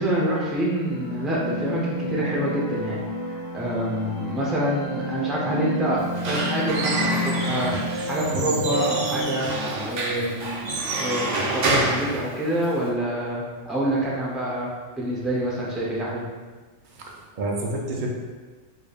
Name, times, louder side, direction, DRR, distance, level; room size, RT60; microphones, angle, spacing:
voice 1, 0.0-3.0 3.3-6.0 6.3-9.5 9.8-10.7 11.0-14.7 15.0-16.3, right 1 dB, ahead, -5 dB, 0.3 m, -27 dB
sound 1, 0.8-9.5, right 1 dB, 40° left, 1.0 m, -30 dB
Squeak / Wood, 6.0-12.9, right 2 dB, 85° right, 1.0 m, -28 dB
voice 2, 16.9-18.1, right 2 dB, 50° right, -1 dB, 0.7 m, -29 dB
4.9 x 2.7 x 2.3 m, 1.3 s
omnidirectional pair, 1.3 m